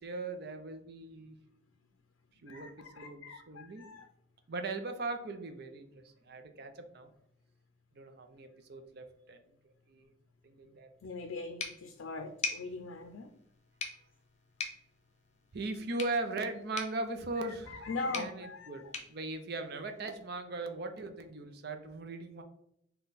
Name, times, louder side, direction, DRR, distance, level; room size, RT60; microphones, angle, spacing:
voice 1, 0.0-1.4 2.4-3.8 4.5-7.1 8.0-9.4 9.9-10.1 10.4-10.9 15.5-17.9 18.1-22.4, right 2 dB, 50° right, 6 dB, 0.5 m, -39 dB
voice 2, 2.5-4.1 11.0-13.3 17.4-18.8, left 3 dB, 85° left, 5 dB, 0.5 m, -41 dB
sound 1, 11.6-20.3, left 4 dB, 35° left, 0.6 m, -44 dB
5.4 x 2.3 x 4.0 m, 0.74 s
head